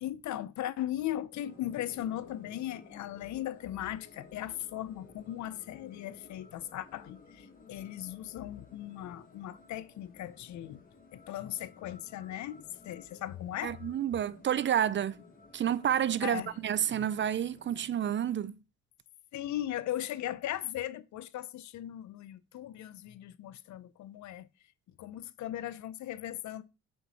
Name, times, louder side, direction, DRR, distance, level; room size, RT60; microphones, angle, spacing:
voice 1, 0.0-10.8 11.1-13.8 16.2-16.5 16.9-17.1 19.3-24.5 25.0-26.6, left 12 dB, 70° left, 0.6 m, -38 dB
sound 1, 1.3-17.9, left 3 dB, 30° left, 2.0 m, -56 dB
voice 2, 13.6-15.2 15.5-18.5, right 9 dB, 40° right, 0.4 m, -29 dB
7.0 x 4.6 x 4.1 m
cardioid pair, 90°, 30 cm